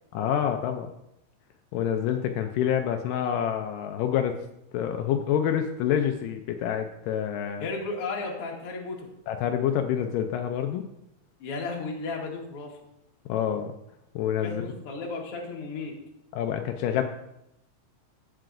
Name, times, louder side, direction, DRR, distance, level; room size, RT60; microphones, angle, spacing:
voice 1, 0.1-0.9 1.7-4.4 4.7-7.7 9.3-10.9 13.3-13.7 14.2-14.7 16.3-17.0, left 9 dB, 80° left, 5 dB, 2.2 m, -27 dB
voice 2, 7.6-9.1 11.4-12.7 14.4-15.9, left 3 dB, 50° left, -1 dB, 2.0 m, -34 dB
15.0 x 5.7 x 2.5 m, 0.82 s
omnidirectional pair, 3.9 m